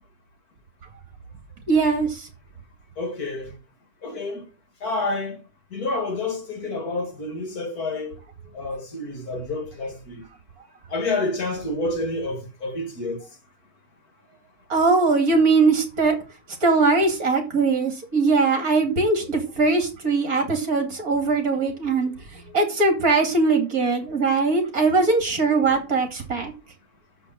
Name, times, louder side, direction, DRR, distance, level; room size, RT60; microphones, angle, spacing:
voice 1, 1.7-2.3 14.7-16.2 16.6-22.1 22.5-26.5, right 3 dB, 60° right, 2.8 m, -21 dB
voice 2, 3.0-3.6 4.0-4.5 4.8-5.4 5.7-8.2 8.5-10.2 10.9-13.3, left 2 dB, 60° left, 2.4 m, -29 dB
6.9 x 6.2 x 7.4 m
omnidirectional pair, 1.8 m